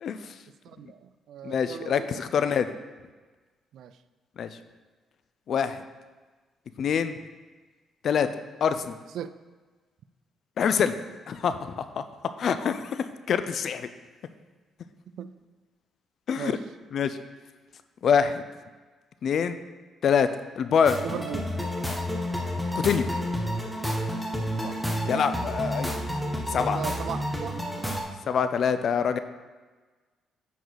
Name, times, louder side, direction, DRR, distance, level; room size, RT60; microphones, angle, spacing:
voice 1, 0.0-0.3 1.4-2.7 4.4-4.5 5.5-5.8 6.8-7.2 8.0-8.3 8.6-9.0 10.6-10.9 11.3-12.0 12.4-13.0 13.3-13.9 16.3-16.5 16.9-17.2 18.0-18.4 19.2-19.6 20.0-20.3 20.6-21.0 22.7-23.1 25.1-25.9 26.5-26.8 28.3-29.2, left 7 dB, 60° left, 11 dB, 0.5 m, -25 dB
voice 2, 0.6-2.1 3.7-3.9 9.1-9.3 15.1-15.4 16.4-16.6 21.0-21.4 24.4-24.7 26.7-27.6, right 9 dB, 75° right, 12 dB, 0.4 m, -37 dB
sound 1, 20.9-28.0, equal, ahead, 1.1 m, -30 dB
9.3 x 3.9 x 4.7 m, 1.3 s
cardioid pair, 90°, 0 cm